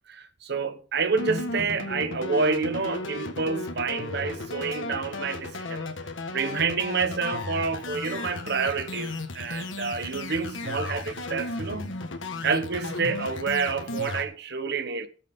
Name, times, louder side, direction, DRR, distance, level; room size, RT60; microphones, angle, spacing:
voice 1, 0.1-5.9 6.3-11.9 12.4-15.1, right 4 dB, 60° right, 1.1 m, -28 dB
sound 1, 1.2-14.2, left 2 dB, 75° left, 1.5 m, -35 dB
19.5 x 6.7 x 3.6 m
head